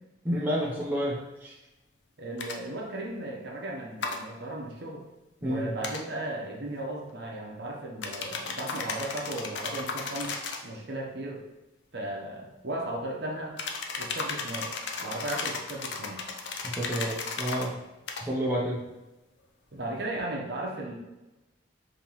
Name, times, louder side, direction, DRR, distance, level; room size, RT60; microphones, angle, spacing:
voice 1, 0.2-1.5 5.4-5.7 16.6-17.8 18.2-18.8, equal, 10° right, -4 dB, 0.6 m, -30 dB
voice 2, 2.2-5.1 5.4-10.4 10.6-11.4 11.9-13.6 14.0-14.7 15.0-16.2 19.7-21.0, right 1 dB, 55° right, 0 dB, 0.7 m, -36 dB
sound 1, 2.4-2.6 4.0-4.2 5.8-6.0 8.0-10.7 13.6-17.7 18.1-18.3, left 4 dB, 60° left, 0.5 m, -35 dB
5.4 x 2.9 x 3.0 m, 1.0 s
head